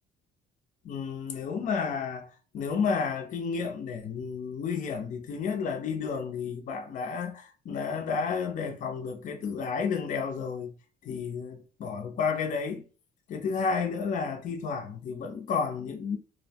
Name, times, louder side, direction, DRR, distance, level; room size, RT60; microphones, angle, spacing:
voice 1, 0.8-10.7 11.0-12.8 13.3-16.2, left 5 dB, 50° left, 0.5 m, -31 dB
2.6 x 2.0 x 2.7 m
cardioid pair, 110°, 17 cm